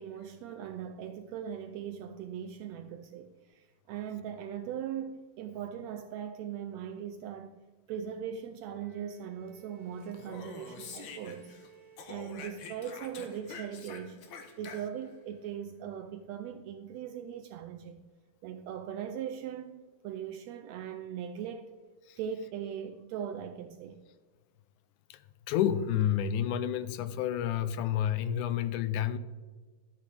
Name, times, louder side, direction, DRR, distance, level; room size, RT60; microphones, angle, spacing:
voice 1, 0.0-7.6 7.9-11.5 12.1-14.2 14.6-18.1 18.4-21.7 22.2-24.0, right 8 dB, 80° right, 1.6 m, -40 dB
Bowed string instrument, 8.6-13.0, right 6 dB, 60° right, 1.0 m, -58 dB
Speech, 10.0-11.7 12.0-15.1, left 5 dB, 65° left, 1.2 m, -46 dB
voice 2, 25.5-29.2, left 10 dB, 85° left, 2.0 m, -30 dB
12.0 x 8.5 x 3.4 m
omnidirectional pair, 3.5 m